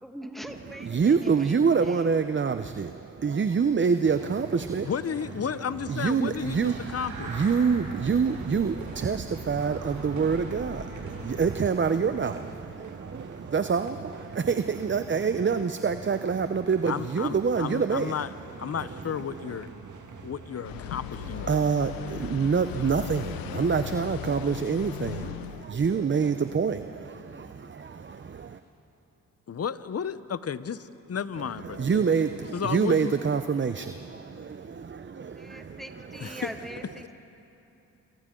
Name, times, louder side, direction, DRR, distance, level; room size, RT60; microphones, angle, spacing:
voice 1, 0.0-2.1 35.1-37.2, equal, ahead, 4 dB, 2.0 m, -43 dB
voice 2, 0.8-4.9 5.9-18.2 18.8-19.6 21.1-28.6 31.4-35.8 36.1-36.4, right 5 dB, 35° right, 9 dB, 0.8 m, -27 dB
sound 1, 4.0-21.4, right 4 dB, 60° right, 2.0 m, -44 dB
voice 3, 4.8-7.3 16.9-18.3 18.6-19.7 20.2-21.6 29.5-31.9 32.5-33.1 36.2-36.3, left 7 dB, 45° left, 14 dB, 0.9 m, -33 dB
sound 2, 6.3-11.6, right 3 dB, 85° right, 6.5 m, -41 dB
sound 3, 20.6-25.7, left 12 dB, 85° left, 0.6 m, -37 dB
28.5 x 26.5 x 3.9 m, 2.9 s
supercardioid pair, 50°, 35 cm